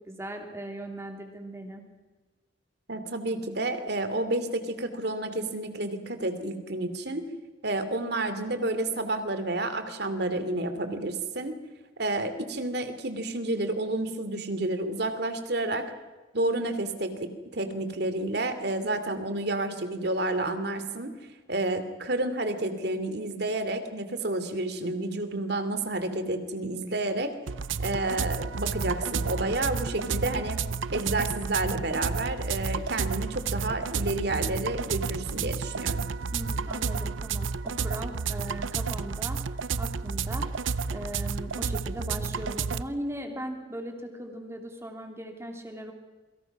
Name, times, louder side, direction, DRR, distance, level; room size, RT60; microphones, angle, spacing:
voice 1, 0.0-1.8 18.8-19.0 36.3-39.4 39.8-40.5 40.9-45.9, right 1 dB, 15° right, 3 dB, 3.3 m, -38 dB
voice 2, 2.9-7.2 7.6-11.5 12.0-15.8 16.3-21.1 21.5-27.3 27.8-30.6 30.9-36.0, right 2 dB, 55° right, 9 dB, 2.8 m, -30 dB
sound 1, 27.5-42.8, right 5 dB, 90° right, 0.7 m, -31 dB
28.0 x 24.0 x 6.1 m, 1.3 s
head